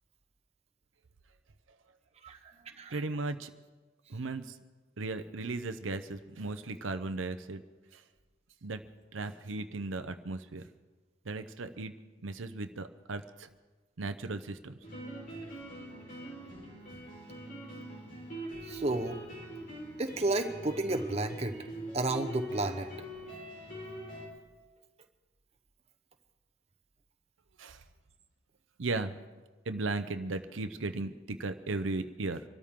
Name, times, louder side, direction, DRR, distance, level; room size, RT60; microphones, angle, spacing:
voice 1, 2.9-3.5 4.1-4.5 5.0-7.6 7.9-8.0 8.6-8.8 9.1-10.6 11.3-11.9 12.2-13.5 14.0-14.7 16.2-16.4 27.6-27.8 28.8-29.2 29.7-32.4, right 3 dB, 80° right, 9 dB, 0.7 m, -36 dB
sound 1, 14.8-24.3, right 1 dB, 45° left, 4.6 m, -43 dB
voice 2, 18.7-19.2 20.0-21.6 21.9-22.9, right 2 dB, 30° right, 4 dB, 1.0 m, -31 dB
25.0 x 13.0 x 3.7 m, 1.3 s
head